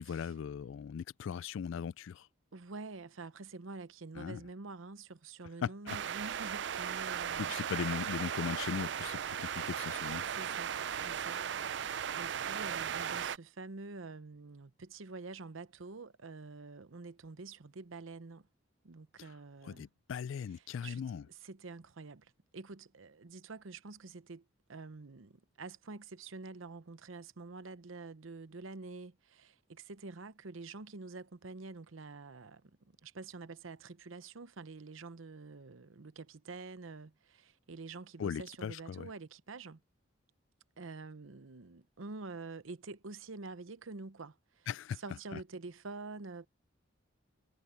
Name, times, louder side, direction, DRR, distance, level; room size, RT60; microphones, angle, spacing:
voice 1, 0.0-2.3 4.2-4.4 5.6-6.0 7.4-10.2 19.6-21.2 38.2-39.1 44.7-45.0 45.3-45.4, left 7 dB, 70° left, 0.3 m, -38 dB
voice 2, 2.5-7.6 10.3-18.5 18.8-19.9 20.8-21.0 21.3-39.8 40.8-44.7 44.9-46.5, right 3 dB, 80° right, 0.8 m, -47 dB
sound 1, 5.9-13.4, right 8 dB, 60° right, 0.4 m, -37 dB
head